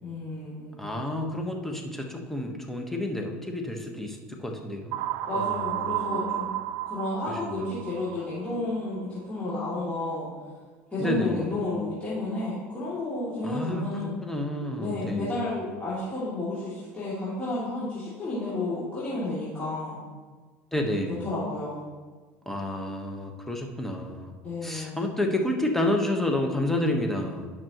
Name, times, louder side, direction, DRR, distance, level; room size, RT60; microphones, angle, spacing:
voice 1, 0.0-0.8 5.3-6.6 6.8-10.3 10.9-14.1 14.8-19.9 21.2-21.8 24.4-25.1, left 2 dB, 20° left, -10 dB, 2.6 m, -31 dB
voice 2, 0.8-5.0 5.4-6.2 7.4-7.6 11.0-11.5 13.4-15.3 20.7-21.2 22.4-24.3 24.6-27.5, left 1 dB, 5° left, 2 dB, 1.2 m, -30 dB
sound 1, 4.9-8.8, right 13 dB, 60° right, 0.4 m, -32 dB
10.5 x 6.1 x 3.0 m, 1.4 s
supercardioid pair, 95°, 6 cm